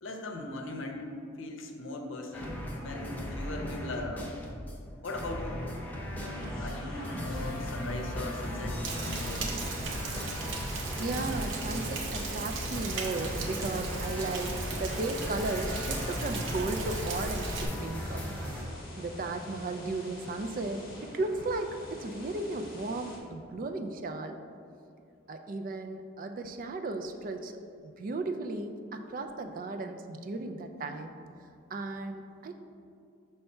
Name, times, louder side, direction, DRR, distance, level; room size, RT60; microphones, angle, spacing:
voice 1, 0.0-1.0 1.4-4.4 5.0-5.6 6.2-9.6, left 2 dB, 80° left, 3 dB, 0.7 m, -39 dB
sound 1, 2.3-4.7 5.0-18.6, equal, 10° left, 0.6 m, -37 dB
sound 2, 6.3-23.2, left 1 dB, 45° left, 1.0 m, -47 dB
Rain, 8.8-17.7, right 3 dB, 80° right, 0.7 m, -37 dB
voice 2, 11.0-18.2 19.0-24.4 25.3-31.2 31.7-32.5, right 2 dB, 45° right, 6 dB, 0.3 m, -35 dB
5.6 x 3.3 x 5.4 m, 2.4 s
head